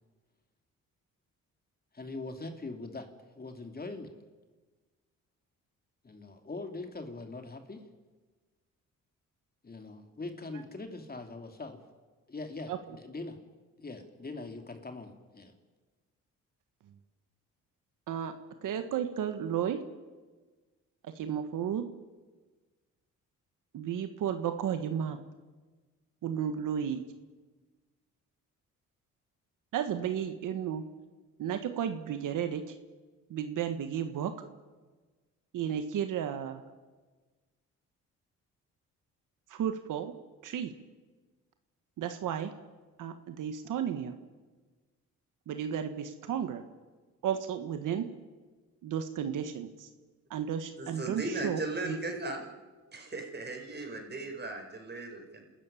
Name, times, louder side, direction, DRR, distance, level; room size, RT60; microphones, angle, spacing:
voice 1, 1.9-3.1 3.4-4.1 6.0-7.8 9.6-11.8 12.3-13.4 13.8-15.5, left 3 dB, 30° left, 5 dB, 2.7 m, -42 dB
voice 2, 18.6-19.8 21.0-21.9 23.7-25.2 26.2-27.0 29.7-30.8 31.4-32.7 33.3-34.3 35.5-36.6 39.5-40.1 40.4-40.7 42.0-42.5 43.0-44.1 45.5-46.6 47.2-48.1 48.8-49.9 50.3-52.0, right 9 dB, 75° right, 8 dB, 1.6 m, -33 dB
voice 3, 50.8-52.5 52.9-55.4, right 2 dB, 30° right, 3 dB, 5.9 m, -37 dB
28.5 x 13.5 x 10.0 m, 1.3 s
cardioid pair, 85°, 31 cm